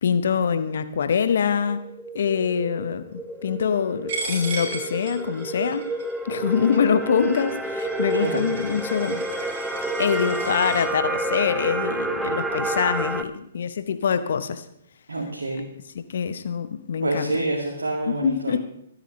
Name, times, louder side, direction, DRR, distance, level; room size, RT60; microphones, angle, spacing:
voice 1, 0.0-1.8 2.1-5.9 6.2-9.2 10.0-14.7 16.1-17.4 18.1-18.6, left 7 dB, 60° left, 0.9 m, -24 dB
sound 1, 1.4-13.2, right 2 dB, 5° right, 0.8 m, -29 dB
Coin (dropping), 4.1-10.8, right 3 dB, 50° right, 4.8 m, -36 dB
voice 2, 8.1-8.5 15.1-15.7 17.0-18.6, right 2 dB, 75° right, 2.1 m, -27 dB
23.0 x 9.2 x 3.2 m
figure-of-eight pair, 120°, 0 cm